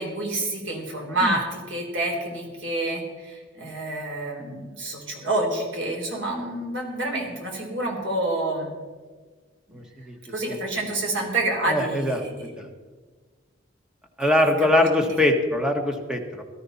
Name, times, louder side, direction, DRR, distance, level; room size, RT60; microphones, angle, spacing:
voice 1, 0.0-8.7 9.7-9.8 10.3-12.5 15.1-15.2, right 2 dB, 70° right, 0 dB, 3.7 m, -28 dB
voice 2, 9.7-10.1 10.5-10.6 11.7-12.7 14.2-16.4, left 1 dB, 5° right, 3 dB, 1.3 m, -23 dB
18.0 x 12.5 x 4.1 m, 1.4 s
head